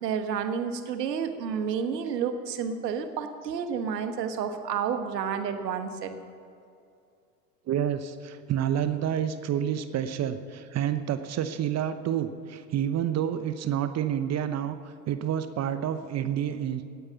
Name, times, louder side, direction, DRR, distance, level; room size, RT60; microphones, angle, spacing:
voice 1, 0.0-6.1, right 7 dB, 75° right, 8 dB, 1.5 m, -30 dB
voice 2, 7.7-16.8, right 9 dB, 30° right, 10 dB, 0.9 m, -29 dB
17.5 x 9.4 x 7.0 m, 2.5 s
hypercardioid pair, 80°, 49 cm